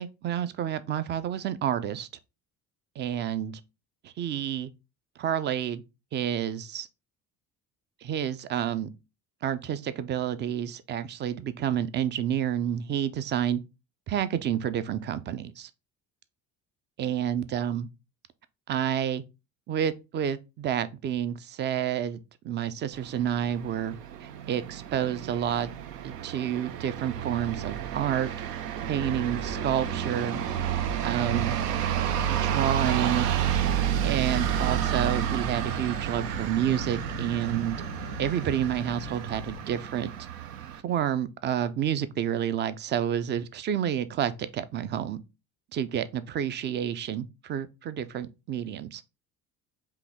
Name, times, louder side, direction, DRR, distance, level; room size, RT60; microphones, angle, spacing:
voice 1, 0.0-2.1 3.0-3.6 4.0-4.7 5.2-5.8 6.1-6.9 8.0-8.9 9.4-13.6 14.1-15.7 17.0-17.9 18.7-19.2 19.7-22.2 22.4-25.7 26.0-28.3 28.8-30.4 31.0-31.6 32.3-33.3 34.0-37.8 38.2-40.1 40.8-45.2 45.7-49.0, right 10 dB, 25° right, 0.3 m, -29 dB
sound 1, 22.9-40.8, right 10 dB, 75° right, 0.6 m, -30 dB
sound 2, 29.0-39.6, left 11 dB, 65° left, 0.6 m, -43 dB
5.0 x 2.7 x 3.5 m
figure-of-eight pair, 50°, 49 cm